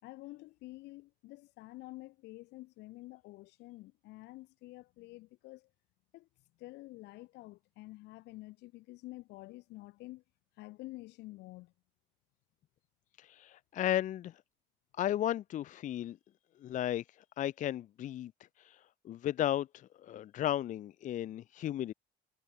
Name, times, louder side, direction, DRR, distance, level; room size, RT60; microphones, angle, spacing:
voice 1, 0.0-5.7 6.1-6.3 6.6-10.2 10.6-11.7, left 19 dB, 85° left, 3.7 m, -49 dB
voice 2, 13.2-14.4 15.0-16.2 16.6-17.0 17.4-18.3 18.6-21.9, left 12 dB, 50° left, 0.4 m, -34 dB
cardioid pair, 110°, 17 cm